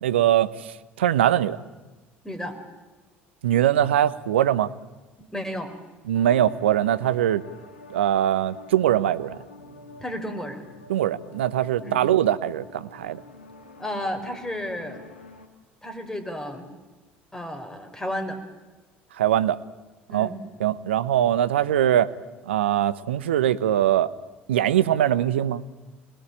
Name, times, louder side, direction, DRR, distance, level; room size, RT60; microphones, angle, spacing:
voice 1, 0.0-1.6 3.4-4.7 6.1-7.4 7.9-9.4 10.9-13.2 19.2-19.6 20.1-20.3 20.6-22.1 22.5-24.1 24.5-25.6, right 11 dB, 80° right, 15 dB, 0.9 m, -22 dB
voice 2, 2.2-2.6 5.3-5.7 10.0-10.6 11.8-12.0 13.8-15.0 15.8-16.6 17.3-18.4 20.1-20.4, equal, 5° left, 6 dB, 4.9 m, -32 dB
Pad Ambient, 6.2-15.5, left 2 dB, 85° left, 2.4 m, -47 dB
26.0 x 20.0 x 8.9 m, 1.2 s
hypercardioid pair, 65°, 6 cm